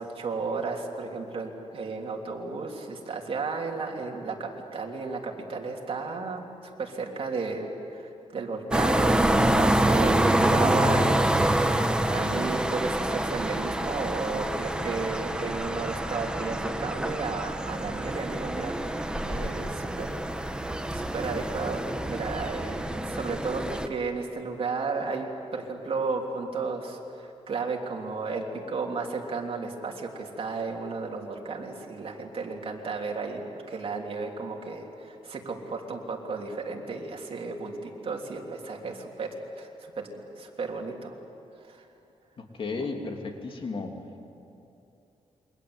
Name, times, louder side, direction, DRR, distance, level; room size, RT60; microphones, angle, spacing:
voice 1, 0.0-6.4 6.8-11.7 12.1-20.6 20.9-33.4 33.7-39.3 39.6-39.7 40.0-40.1 40.4-41.1 41.6-41.9 42.8-42.9, right 4 dB, 55° right, 1 dB, 3.5 m, -33 dB
sound 1, 8.7-23.9, right 1 dB, 5° right, 1.3 m, -26 dB
voice 2, 42.4-44.0, left 3 dB, 50° left, 3 dB, 3.1 m, -34 dB
28.5 x 24.0 x 8.1 m, 2.8 s
cardioid pair, 110°, 12 cm